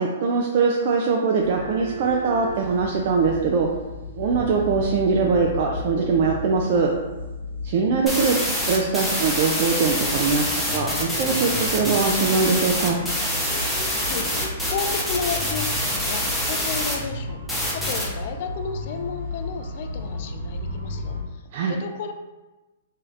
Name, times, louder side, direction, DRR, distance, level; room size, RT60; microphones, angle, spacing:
voice 1, 0.0-3.7 4.1-6.9 7.6-8.4 8.7-13.0 21.5-21.8, right 5 dB, 50° right, 0 dB, 0.3 m, -22 dB
sound 1, 1.4-21.2, left 1 dB, 90° right, 0.9 m, -34 dB
sound 2, 8.1-16.9 17.5-18.1, equal, ahead, 0.7 m, -26 dB
voice 2, 14.7-17.4 17.7-21.4 21.7-22.1, left 6 dB, 55° left, 6 dB, 0.3 m, -32 dB
2.7 x 2.4 x 3.2 m, 1.1 s
hypercardioid pair, 135°, 0 cm